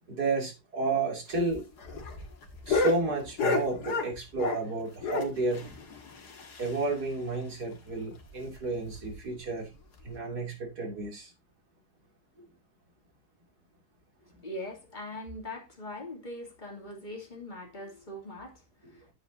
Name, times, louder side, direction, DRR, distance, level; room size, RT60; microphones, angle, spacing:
voice 1, 0.1-1.6 2.7-5.7 6.6-9.7 10.0-11.3 12.4-12.5, right 3 dB, 75° right, 3.5 m, -31 dB
sound 1, 1.3-4.7 5.0-7.0 7.3-7.4 7.7-7.8 8.2-8.3 8.9-9.2 10.0-10.1, left 3 dB, 85° left, 2.3 m, -32 dB
voice 2, 14.2-19.1, left 1 dB, 30° left, 3.1 m, -42 dB
10.0 x 8.9 x 2.7 m
omnidirectional pair, 1.7 m